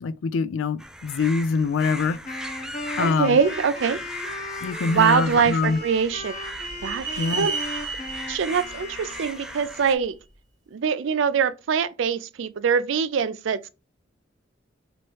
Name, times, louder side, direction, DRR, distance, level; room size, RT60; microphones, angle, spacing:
voice 1, 0.0-2.2 3.0-3.4 4.6-5.8 7.2-7.5, left 4 dB, 90° left, 0.4 m, -24 dB
sound 1, 0.8-10.0, equal, 5° right, 0.3 m, -38 dB
Wind instrument woodwind instrument, 1.8-9.9, left 2 dB, 40° left, 0.7 m, -38 dB
voice 2, 3.0-4.0 4.8-6.4 6.8-7.5 8.3-10.2 10.7-13.7, right 6 dB, 75° right, 0.4 m, -23 dB
sound 2, 4.9-10.1, right 4 dB, 20° right, 1.2 m, -35 dB
3.1 x 3.0 x 4.4 m
head